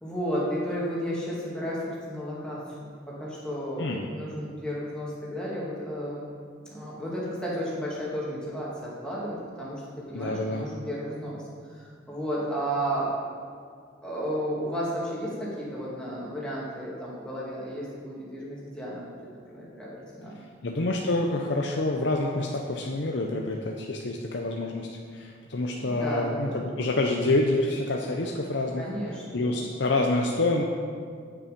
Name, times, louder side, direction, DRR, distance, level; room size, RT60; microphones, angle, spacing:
voice 1, 0.0-6.3 6.7-9.8 10.1-11.4 11.7-13.2 14.0-19.2 19.5-20.4 25.9-26.6 28.8-29.6, equal, 5° left, -7 dB, 2.1 m, -33 dB
voice 2, 3.8-4.1 10.1-10.6 20.6-28.9 29.3-30.6, left 2 dB, 65° left, 1 dB, 0.6 m, -27 dB
8.7 x 7.0 x 5.2 m, 2.1 s
head